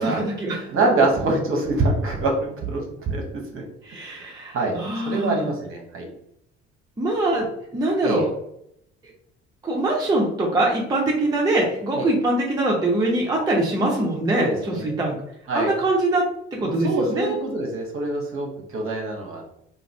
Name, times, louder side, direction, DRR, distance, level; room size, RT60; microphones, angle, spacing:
voice 1, 0.0-0.7 3.8-5.5 7.0-7.5 7.7-8.3 9.6-15.2 15.5-16.2 16.6-17.4, right 2 dB, 10° right, -2 dB, 0.6 m, -23 dB
voice 2, 0.7-3.6 4.0-4.8 5.1-6.1 8.0-8.2 11.9-12.1 14.3-14.8 15.5-15.7 16.6-19.5, right 2 dB, 40° right, 1 dB, 0.9 m, -25 dB
2.5 x 2.5 x 3.2 m, 0.74 s
figure-of-eight pair, 50°, 34 cm